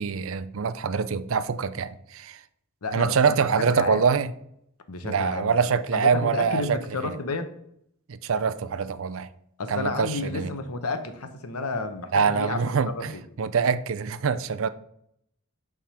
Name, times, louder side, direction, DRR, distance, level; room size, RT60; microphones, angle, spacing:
voice 1, 0.0-2.4 2.9-4.3 5.0-6.8 8.1-9.3 9.7-10.5 12.1-14.7, right 6 dB, 65° right, 0.4 m, -24 dB
voice 2, 2.8-4.0 4.9-5.5 5.9-7.5 9.6-12.6 12.9-13.2, left 3 dB, 80° left, 0.9 m, -31 dB
7.2 x 3.7 x 6.2 m
head